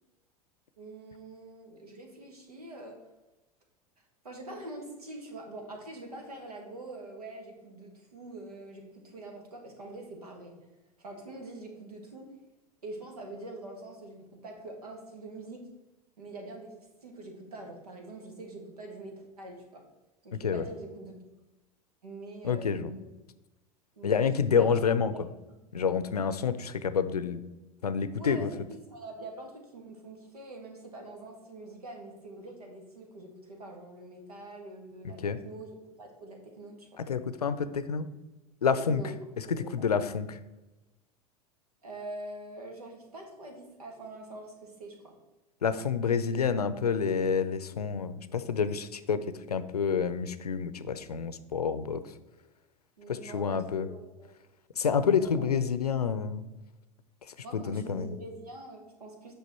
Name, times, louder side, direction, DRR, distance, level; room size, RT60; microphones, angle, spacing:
voice 1, 0.8-3.0 4.2-10.5 11.0-12.3 12.8-15.7 16.2-19.8 20.2-21.2 22.0-23.1 24.0-24.7 25.1-25.2 28.2-28.5 28.9-35.7 36.0-36.9 38.9-39.1 39.6-39.9 41.8-45.1 53.0-54.3 55.1-55.3 57.4-59.3, right 2 dB, 75° right, 2 dB, 1.9 m, -44 dB
voice 2, 20.3-20.6 22.4-22.9 24.0-25.1 25.7-27.4 27.8-28.5 35.2-35.4 37.0-38.1 38.6-39.0 39.5-40.4 45.6-52.0 53.1-53.9 54.8-56.5 57.5-58.2, left 6 dB, 80° left, 13 dB, 0.6 m, -28 dB
8.7 x 5.7 x 4.4 m, 1.1 s
figure-of-eight pair, 80°, 20 cm